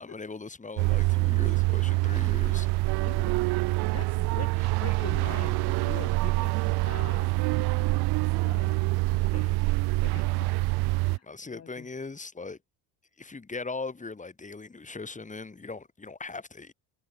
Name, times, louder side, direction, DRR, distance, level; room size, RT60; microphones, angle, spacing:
voice 1, 0.0-2.7 11.1-12.6 13.2-16.7, left 3 dB, 20° left, 4.8 m, -39 dB
sound 1, 0.8-11.2, right 23 dB, 75° right, 0.6 m, -26 dB
voice 2, 3.0-3.5 3.9-7.7 8.0-9.7 10.0-10.6 10.9-11.9, left 8 dB, 40° left, 2.9 m, -44 dB
cardioid pair, 105°, 39 cm